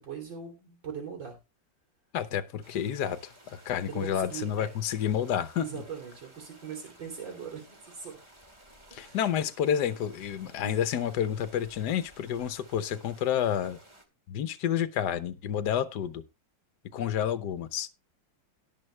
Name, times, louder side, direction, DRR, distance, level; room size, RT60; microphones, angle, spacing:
voice 1, 0.0-1.4 3.9-4.7 5.6-8.2 8.9-9.2, right 7 dB, 85° right, 1 dB, 4.0 m, -40 dB
voice 2, 2.1-5.6 8.9-13.8 14.3-16.2 16.9-17.9, left 9 dB, 70° left, 12 dB, 1.4 m, -29 dB
sound 1, 2.6-14.0, right 1 dB, 15° right, 1.9 m, -56 dB
17.5 x 6.2 x 3.3 m, 0.24 s
omnidirectional pair, 2.0 m